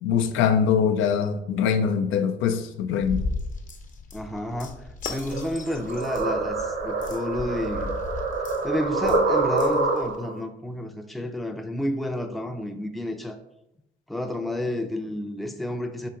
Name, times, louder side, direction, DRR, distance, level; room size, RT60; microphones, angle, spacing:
voice 1, 0.0-3.2, left 7 dB, 85° left, 0.4 m, -23 dB
sound 1, 3.0-10.2, left 3 dB, 40° left, 0.7 m, -36 dB
voice 2, 4.1-7.9 8.6-13.4 14.1-16.1, left 1 dB, ahead, 0.4 m, -31 dB
sound 2, 5.3-10.4, right 3 dB, 80° right, 1.2 m, -26 dB
4.5 x 2.8 x 3.8 m
cardioid pair, 90°, 20 cm